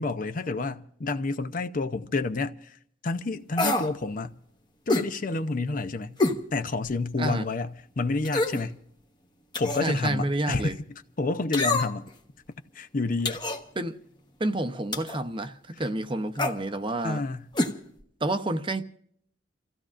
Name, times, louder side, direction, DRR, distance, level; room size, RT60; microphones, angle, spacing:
voice 1, 0.0-4.3 4.9-6.2 6.5-8.8 9.6-12.1 12.7-13.4 15.7-15.8 17.0-17.5, left 3 dB, 45° left, 0.6 m, -29 dB
sound 1, 3.6-3.9 4.9-5.1 6.2-6.4 6.9-7.0 8.2-8.6 9.5-9.9 11.5-12.1 13.2-13.6 14.9-15.2 16.3-16.6 17.5-17.7 18.0-18.1, left 2 dB, 25° left, 1.1 m, -26 dB
voice 2, 9.8-10.7 13.8-13.9 14.4-15.5 15.8-17.2 18.2-18.8, right 1 dB, 25° right, 0.8 m, -28 dB
30.0 x 15.5 x 2.5 m
head